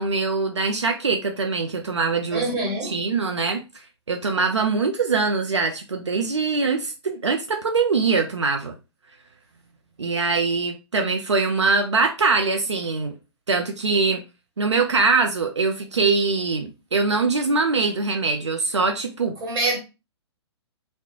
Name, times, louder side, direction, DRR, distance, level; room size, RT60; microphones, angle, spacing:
voice 1, 0.0-2.5 2.8-3.6 4.1-8.8 10.0-13.1 13.5-14.2 14.6-19.3, right 4 dB, 85° right, 0.4 m, -23 dB
voice 2, 2.3-3.0 19.4-19.8, right 2 dB, 25° right, 1.5 m, -25 dB
2.4 x 2.1 x 2.7 m
figure-of-eight pair, 115°, 14 cm